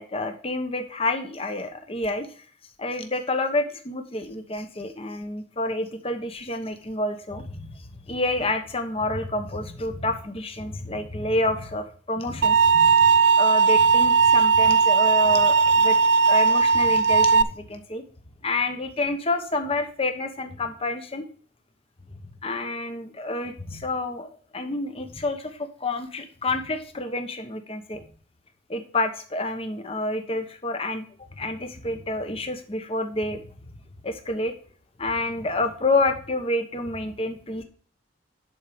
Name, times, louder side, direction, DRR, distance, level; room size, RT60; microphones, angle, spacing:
voice 1, 0.0-2.4 2.8-13.1 13.4-16.0 16.2-18.0 18.4-21.2 22.4-28.0 28.7-31.0 31.4-33.4 34.0-34.5 35.0-37.6, left 2 dB, 30° left, 6 dB, 1.1 m, -28 dB
sound 1, 12.4-17.4, right 5 dB, 60° right, 0.4 m, -18 dB
11.0 x 4.4 x 5.1 m, 0.43 s
head